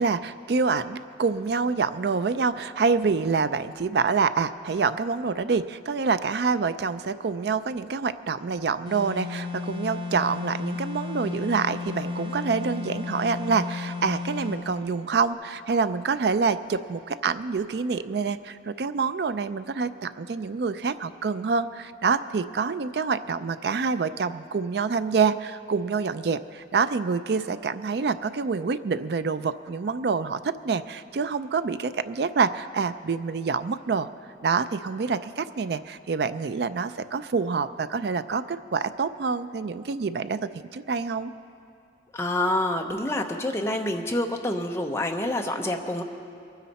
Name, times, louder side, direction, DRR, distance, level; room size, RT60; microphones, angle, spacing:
voice 1, 0.0-34.1 34.4-41.3, right 5 dB, 60° right, 13 dB, 0.4 m, -26 dB
sound 1, 8.8-14.6, left 4 dB, 25° right, 3.4 m, -34 dB
voice 2, 42.1-46.0, left 1 dB, 15° left, 2 dB, 0.8 m, -27 dB
22.0 x 9.8 x 4.2 m, 2.4 s
head